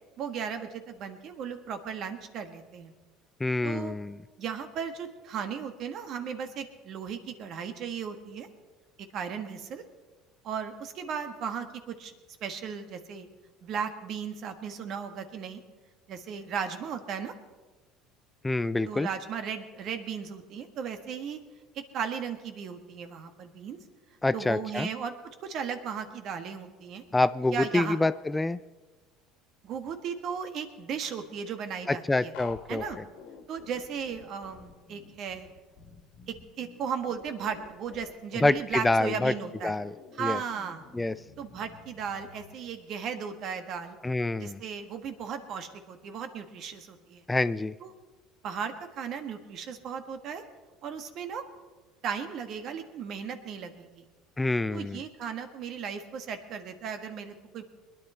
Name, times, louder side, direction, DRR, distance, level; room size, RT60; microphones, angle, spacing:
voice 1, 0.2-2.9 3.6-3.9 4.4-8.5 9.1-9.8 10.4-12.1 12.4-13.3 13.6-15.6 16.1-17.3 18.8-21.4 21.7-23.8 24.3-25.1 25.4-27.0 27.5-28.0 29.6-32.3 32.7-33.0 33.5-35.5 36.3-39.8 40.2-40.8 41.4-44.0 44.4-47.2 47.8-47.9 48.4-50.4 50.8-51.4 52.0-54.0 54.7-57.7, right 7 dB, 55° right, 8 dB, 1.4 m, -36 dB
voice 2, 3.4-4.2 18.4-19.1 24.2-24.9 27.1-28.6 31.9-32.8 38.4-39.3 39.6-40.4 40.9-41.1 44.0-44.6 47.3-47.7 54.4-55.0, left 2 dB, 15° left, 15 dB, 0.4 m, -27 dB
sound 1, 32.3-42.5, left 6 dB, 75° left, 1.6 m, -50 dB
21.0 x 10.5 x 4.4 m, 1.3 s
supercardioid pair, 85°, 0 cm